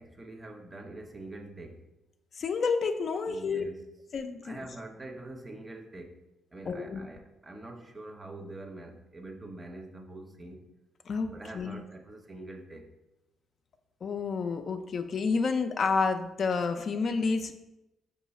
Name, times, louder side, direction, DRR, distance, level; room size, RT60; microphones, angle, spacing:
voice 1, 0.0-1.9 3.3-3.8 4.4-6.2 6.5-10.7 11.3-12.9, right 2 dB, 25° right, 0.5 m, -45 dB
voice 2, 2.4-3.6 4.1-4.6 6.7-7.1 11.1-11.8 14.0-17.5, left 4 dB, 50° left, 0.3 m, -29 dB
4.6 x 2.3 x 4.1 m
cardioid pair, 90°, 0 cm